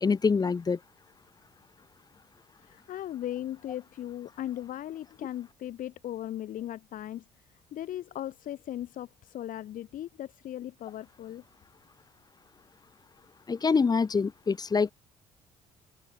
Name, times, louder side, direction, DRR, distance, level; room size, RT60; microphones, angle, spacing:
voice 1, 0.0-0.8 13.5-14.9, left 5 dB, 25° left, 0.6 m, -25 dB
voice 2, 2.6-7.2 7.7-11.4, left 12 dB, 55° left, 1.0 m, -38 dB
open air
hypercardioid pair, 55°, 16 cm